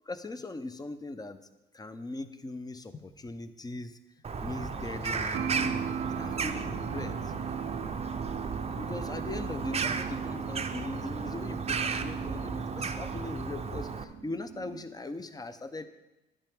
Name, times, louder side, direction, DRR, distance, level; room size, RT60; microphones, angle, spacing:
voice 1, 0.1-1.4 1.7-4.0 4.4-5.8 6.2-7.3 8.8-15.9, left 2 dB, 20° left, 11 dB, 0.7 m, -40 dB
Bird vocalization bird call bird song, 4.2-14.0, right 5 dB, 30° right, 0.6 m, -34 dB
sound 1, 5.3-14.8, right 7 dB, 75° right, 0.6 m, -38 dB
11.0 x 8.9 x 3.5 m, 0.99 s
cardioid pair, 90°, 20 cm